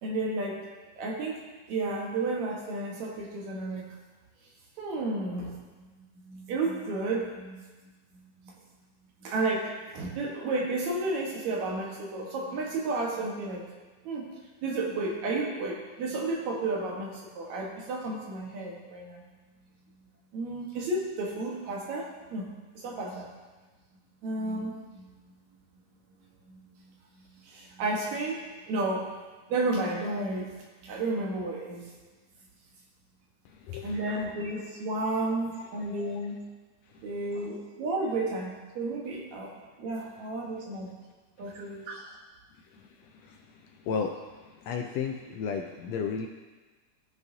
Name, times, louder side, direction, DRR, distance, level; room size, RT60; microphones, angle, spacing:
voice 1, 0.0-0.7 1.0-3.9 4.8-8.5 9.2-13.6 14.0-14.3 14.6-19.2 20.3-22.5 22.7-23.3 24.2-25.3 26.4-29.2 29.5-31.8 33.7-36.4 37.0-40.9 41.4-42.1, right 2 dB, 70° right, -2 dB, 2.6 m, -32 dB
voice 2, 43.9-44.2 44.6-46.3, left 6 dB, 80° left, 3 dB, 1.6 m, -32 dB
15.5 x 6.1 x 2.7 m, 1.3 s
omnidirectional pair, 3.4 m